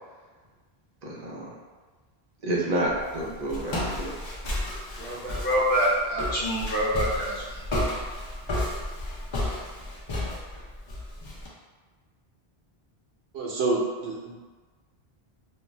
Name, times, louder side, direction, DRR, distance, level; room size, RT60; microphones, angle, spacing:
voice 1, 1.0-1.5 2.4-4.3, right 1 dB, 45° right, -4 dB, 0.6 m, -29 dB
Walk footsteps, 2.9-11.5, left 1 dB, 40° left, 0.4 m, -32 dB
voice 2, 5.0-7.4, equal, 60° left, -7 dB, 0.7 m, -26 dB
voice 3, 13.3-14.3, right 3 dB, 90° right, -3 dB, 0.9 m, -27 dB
2.4 x 2.1 x 3.2 m, 1.4 s
omnidirectional pair, 1.0 m